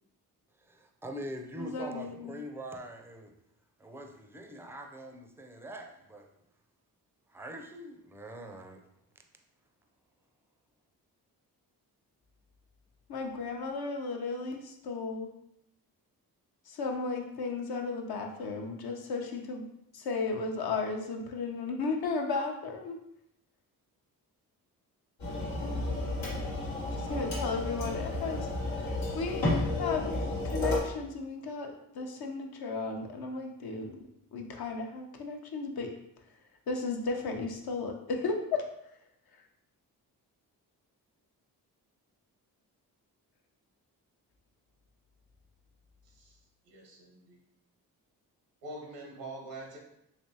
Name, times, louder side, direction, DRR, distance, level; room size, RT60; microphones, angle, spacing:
voice 1, 0.6-3.3 3.8-6.3 7.3-8.9, right 1 dB, 5° right, 3 dB, 0.4 m, -43 dB
voice 2, 1.6-2.3 13.1-15.3 16.7-19.7 19.9-23.0 27.0-28.5 28.8-34.0 34.3-35.9 36.7-38.7, left 4 dB, 65° left, 3 dB, 0.7 m, -35 dB
sound 1, 25.2-30.8, left 1 dB, 90° left, 1.0 m, -32 dB
voice 3, 46.0-47.4 48.6-49.8, right 2 dB, 90° right, 0 dB, 1.0 m, -45 dB
3.3 x 3.0 x 2.8 m, 0.78 s
supercardioid pair, 50°, 41 cm